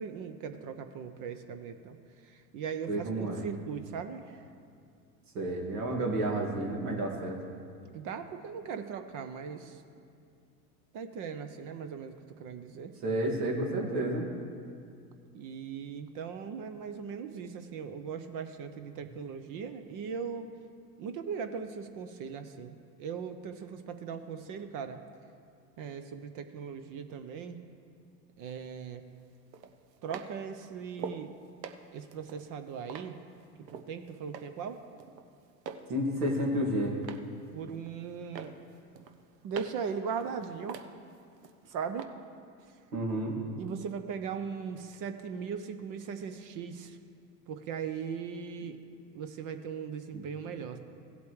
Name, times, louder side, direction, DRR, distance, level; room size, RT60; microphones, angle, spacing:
voice 1, 0.0-4.4 7.9-9.8 10.9-12.9 15.3-20.5 21.0-25.0 25.8-27.6 28.4-29.0 30.0-31.4 31.9-33.2 33.6-34.8 37.5-38.6 39.4-40.8 41.6-42.1 42.7-42.8 43.6-47.0 47.5-48.8 49.1-50.8, right 6 dB, 40° right, 8 dB, 0.7 m, -39 dB
voice 2, 2.9-3.4 5.3-7.4 13.0-14.3 35.9-37.0 42.9-43.4 50.1-50.2, right 1 dB, 70° right, -1 dB, 2.3 m, -30 dB
sound 1, 28.5-28.6 29.5-31.3 31.6-33.9 34.3-34.7 35.0-35.9 36.2-37.3 37.7-38.1 38.4-39.9 40.2-41.6 42.0-42.1, right 6 dB, 85° right, 0.8 m, -44 dB
16.5 x 8.1 x 3.2 m, 2.3 s
hypercardioid pair, 95°, 48 cm